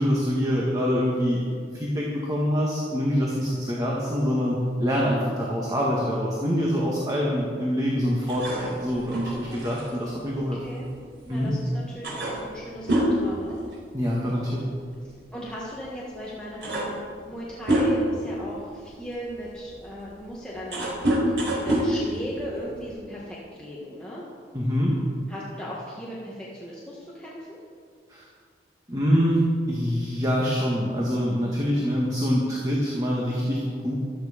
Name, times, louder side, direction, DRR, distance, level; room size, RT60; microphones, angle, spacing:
voice 1, 0.0-1.4 1.7-10.6 11.3-11.5 13.9-14.7 24.5-24.9 28.1-28.2 28.9-29.4 29.7-34.0, equal, 20° right, -4 dB, 1.7 m, -25 dB
sound 1, 8.3-11.3 11.6-11.7 12.0-14.2 14.5-14.8 15.7-15.8 16.3-18.2 18.8-22.9, right 1 dB, 90° right, 4.4 m, -27 dB
voice 2, 10.5-10.9 11.3-13.6 15.3-21.0 21.3-24.2 25.3-27.6, equal, 5° left, -7 dB, 1.7 m, -37 dB
14.0 x 12.5 x 5.2 m, 2.1 s
head